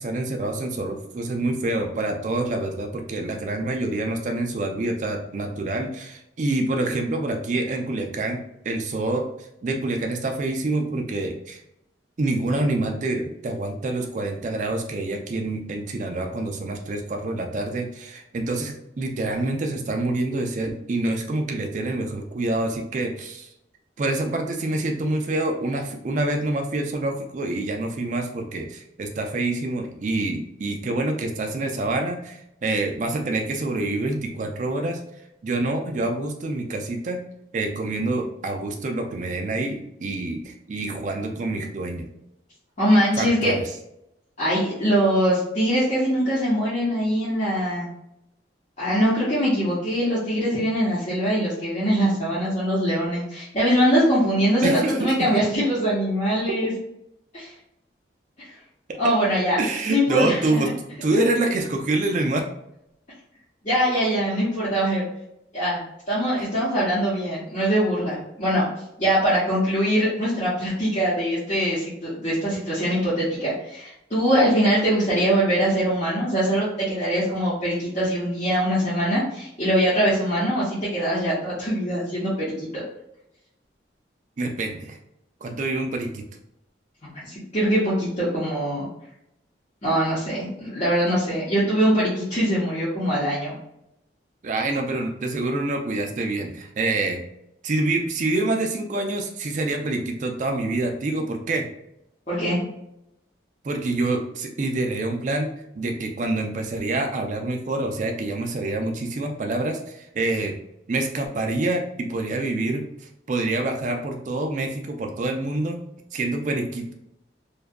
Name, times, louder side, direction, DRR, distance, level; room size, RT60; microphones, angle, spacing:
voice 1, 0.0-9.3 9.6-11.6 12.2-23.5 24.0-35.0 35.4-37.2 37.5-42.1 43.1-43.6 54.6-55.3 56.5-56.6 59.6-60.7 61.0-62.4 84.4-85.0 85.4-86.2 94.4-97.2 97.6-101.7 103.6-110.6 110.9-112.8 113.3-115.8 116.1-116.9, right 2 dB, 40° right, 3 dB, 0.4 m, -26 dB
voice 2, 42.8-43.5 44.4-47.9 48.8-56.7 57.3-57.5 59.0-59.6 59.9-60.6 63.6-65.1 65.5-65.8 66.1-68.7 69.0-82.8 87.0-88.9 89.8-93.5 102.3-102.7, equal, 40° left, -11 dB, 0.8 m, -22 dB
2.6 x 2.3 x 2.2 m, 0.81 s
head